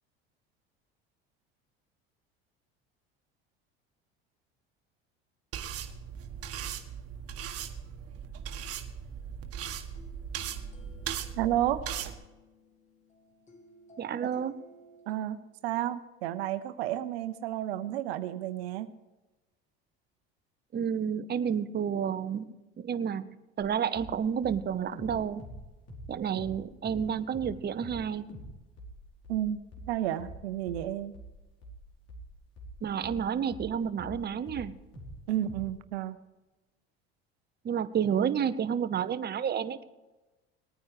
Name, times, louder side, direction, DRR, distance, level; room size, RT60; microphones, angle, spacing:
sound 1, 5.5-12.1, right 8 dB, 50° right, 1.5 m, -38 dB
sound 2, 9.9-15.1, equal, 25° left, 2.6 m, -57 dB
voice 1, 11.4-11.9 15.1-15.4 15.6-18.9 29.3-31.2 35.3-36.2, right 12 dB, 80° right, 12 dB, 0.8 m, -31 dB
voice 2, 14.0-14.5 20.7-22.5 22.8-23.3 23.6-25.4 26.1-28.3 32.8-34.7 37.6-39.8, right 8 dB, 35° right, 11 dB, 0.9 m, -30 dB
sound 3, 23.6-23.7 24.0-24.2 24.4-26.6 26.8-27.1 27.3-27.6 27.8-28.0 28.3-28.5 28.8-34.2 34.5-35.2 35.4-35.6, equal, 55° left, 5.1 m, -45 dB
19.5 x 9.4 x 5.0 m, 1.1 s
hypercardioid pair, 80°, 30 cm